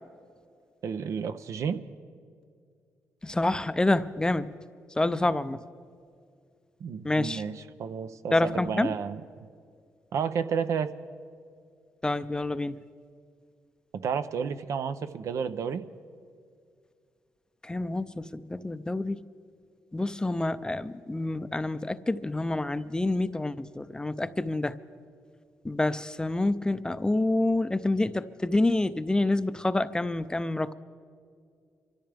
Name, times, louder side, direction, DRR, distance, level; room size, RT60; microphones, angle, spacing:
voice 1, 0.8-1.8 6.8-7.5 7.8-9.5 10.1-10.9 13.9-15.8, right 6 dB, 70° right, 11 dB, 0.6 m, -31 dB
voice 2, 3.2-4.5 5.0-5.6 7.0-7.4 8.3-9.0 12.0-12.8 17.6-19.2 19.9-24.7 25.6-30.7, left 2 dB, 15° left, 13 dB, 0.5 m, -27 dB
25.5 x 13.5 x 3.4 m, 2.3 s
cardioid pair, 75°, 5 cm